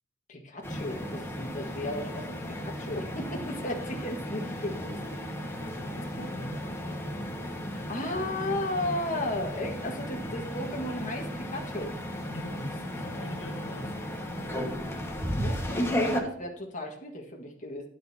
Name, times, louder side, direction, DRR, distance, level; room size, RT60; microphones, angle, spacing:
voice 1, 0.3-5.5 7.7-12.0 14.8-15.1 15.4-17.9, left 1 dB, 40° left, 0 dB, 1.7 m, -35 dB
sound 1, 0.6-16.2, equal, 15° left, 1.5 m, -34 dB
voice 2, 5.5-6.6 12.3-14.0, left 1 dB, 70° left, 3 dB, 1.5 m, -42 dB
12.5 x 9.4 x 2.8 m, 0.74 s
head